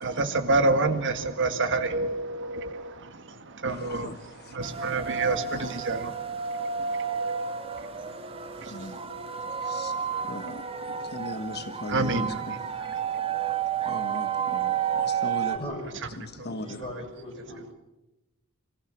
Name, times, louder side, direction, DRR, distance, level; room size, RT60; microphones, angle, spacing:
voice 1, 0.0-9.8 10.1-10.5 10.9-11.0 11.9-13.5 16.3-16.5, right 3 dB, 60° right, 9 dB, 1.9 m, -30 dB
voice 2, 3.7-4.8 5.5-5.7 8.7-9.0 9.6-9.9 10.2-12.6 13.8-15.5 16.2-16.8, left 2 dB, 50° left, 9 dB, 1.4 m, -39 dB
sound 1, 4.6-15.6, right 7 dB, 25° right, 1.4 m, -31 dB
voice 3, 15.5-16.0 16.4-17.6, left 1 dB, 25° left, 0 dB, 7.3 m, -39 dB
26.0 x 15.0 x 7.3 m, 0.96 s
head